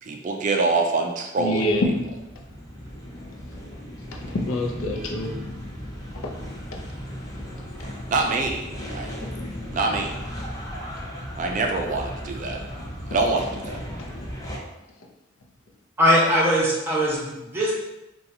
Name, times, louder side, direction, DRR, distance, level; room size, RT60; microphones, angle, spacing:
voice 1, 0.0-1.7 8.1-8.6 8.9-9.1 9.7-10.1 11.4-12.6 13.1-13.8, right 3 dB, 40° right, 2 dB, 0.3 m, -25 dB
voice 2, 1.4-2.0 4.1-5.4 6.2-6.3 6.7-6.8 7.4-7.5 9.2-9.3, left 1 dB, 85° left, 2 dB, 0.5 m, -26 dB
sound 1, 1.4-14.6, equal, 20° left, 0.6 m, -36 dB
voice 3, 16.0-17.7, equal, 10° right, -6 dB, 0.9 m, -20 dB
4.0 x 2.3 x 2.7 m, 0.95 s
head